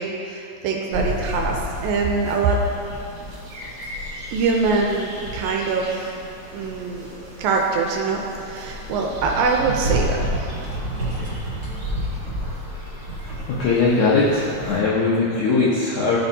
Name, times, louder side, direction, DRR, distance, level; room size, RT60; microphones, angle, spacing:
voice 1, 0.0-1.6 1.8-2.6 4.3-6.2 6.5-7.1 7.4-10.2, right 4 dB, 80° right, 0 dB, 2.2 m, -23 dB
sound 1, 0.9-14.8, equal, 55° right, 1.1 m, -31 dB
voice 2, 13.5-16.2, left 3 dB, 80° left, -7 dB, 1.7 m, -20 dB
13.0 x 4.4 x 2.7 m, 2.7 s
omnidirectional pair, 4.5 m